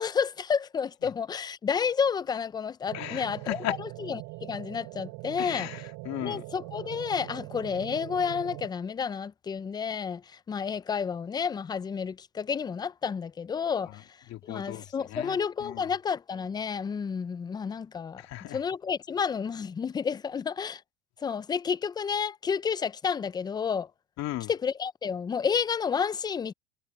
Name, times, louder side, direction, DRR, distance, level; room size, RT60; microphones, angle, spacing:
voice 1, 0.0-5.7 6.2-14.1 14.4-18.2 18.5-20.8 21.2-23.9 24.5-26.5, left 6 dB, 10° left, 0.4 m, -30 dB
voice 2, 2.9-3.8 5.4-6.4 7.7-7.9 13.9-14.0 14.3-15.9 18.2-18.6 24.2-24.5, left 15 dB, 45° left, 2.6 m, -37 dB
sound 1, 2.9-8.7, right 24 dB, 60° right, 7.5 m, -42 dB
supercardioid pair, 120°, 37 cm